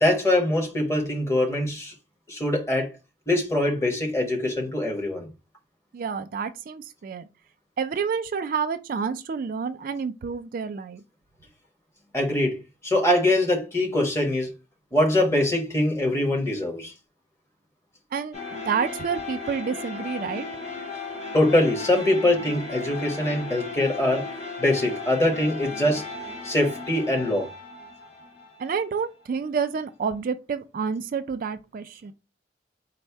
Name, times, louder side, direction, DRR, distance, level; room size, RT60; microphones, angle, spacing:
voice 1, 0.0-1.9 2.3-2.9 3.3-5.3 12.1-12.6 12.8-14.5 14.9-16.9 21.3-24.3 24.6-26.0 26.4-27.5, left 1 dB, 15° left, 1.0 m, -23 dB
voice 2, 5.9-7.2 7.8-11.0 18.1-20.5 28.6-32.1, right 6 dB, 50° right, 0.3 m, -29 dB
sound 1, 18.3-29.2, left 3 dB, 40° left, 1.4 m, -36 dB
4.1 x 2.0 x 4.5 m
head